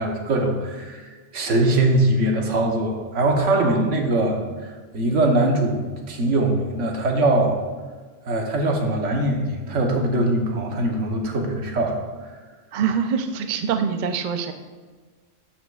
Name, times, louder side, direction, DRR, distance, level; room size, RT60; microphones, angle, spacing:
voice 1, 0.0-7.6 8.2-12.0, right 2 dB, 75° right, 2 dB, 1.4 m, -22 dB
voice 2, 3.5-4.0 12.7-14.5, right 6 dB, 55° right, 7 dB, 0.5 m, -25 dB
13.0 x 6.2 x 2.4 m, 1.4 s
omnidirectional pair, 1.3 m